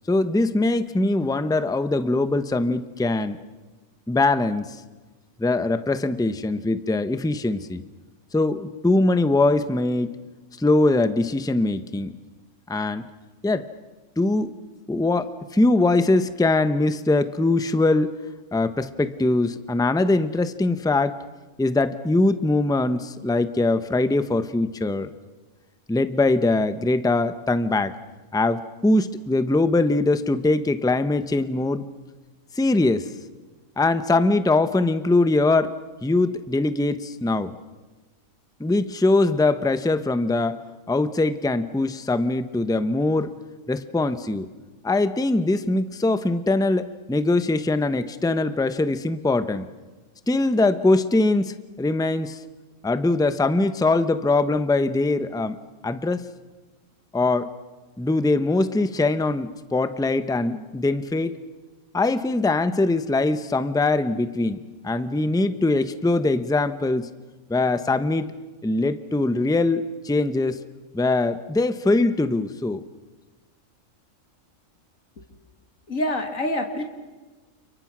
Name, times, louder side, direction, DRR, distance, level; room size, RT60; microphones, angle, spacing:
voice 1, 0.1-3.4 4.1-4.8 5.4-7.8 8.3-10.1 10.6-12.1 12.7-13.1 13.4-13.7 14.2-14.5 14.9-18.2 18.5-21.2 21.6-25.1 25.9-28.0 28.3-31.8 32.6-33.1 33.8-37.5 38.6-43.3 43.7-44.5 44.8-49.7 50.3-52.4 52.8-55.6 55.8-56.3 57.1-57.5 58.0-61.4 61.9-67.1 67.5-68.3 68.6-70.6 70.9-72.8, left 2 dB, 5° left, 11 dB, 0.7 m, -22 dB
voice 2, 75.9-76.8, left 1 dB, 75° left, 4 dB, 2.5 m, -26 dB
30.0 x 29.5 x 6.2 m, 1.2 s
omnidirectional pair, 1.4 m